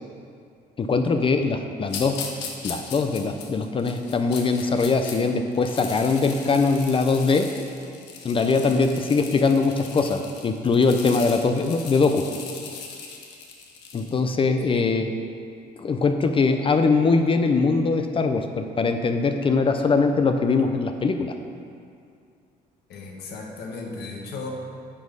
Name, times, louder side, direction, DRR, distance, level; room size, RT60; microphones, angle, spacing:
voice 1, 0.8-2.3 2.6-7.5 8.2-12.3 13.9-15.1 15.8-21.3, left 4 dB, 30° left, 6 dB, 0.6 m, -22 dB
sound 1, 1.9-5.2 5.5-14.2, left 5 dB, 90° left, 1.4 m, -39 dB
voice 2, 22.9-24.5, left 4 dB, 70° left, -1 dB, 1.8 m, -35 dB
9.9 x 6.2 x 5.5 m, 2.4 s
cardioid pair, 110°, 17 cm